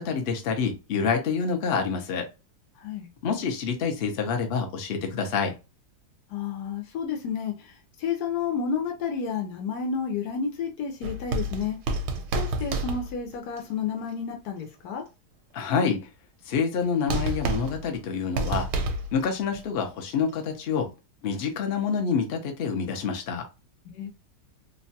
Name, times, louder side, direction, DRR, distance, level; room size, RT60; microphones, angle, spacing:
voice 1, 0.0-2.3 3.2-5.5 15.5-16.1 16.5-18.7 19.1-20.9 21.2-23.5, left 6 dB, 55° left, 0.6 m, -27 dB
voice 2, 2.8-3.1 6.3-11.8 12.3-15.0 23.9-24.1, left 6 dB, 85° left, 1.2 m, -31 dB
sound 1, 11.0-13.6 16.8-16.9 17.1-19.3 19.5-19.6, right 2 dB, 85° right, 1.1 m, -29 dB
2.9 x 2.2 x 2.7 m
omnidirectional pair, 1.7 m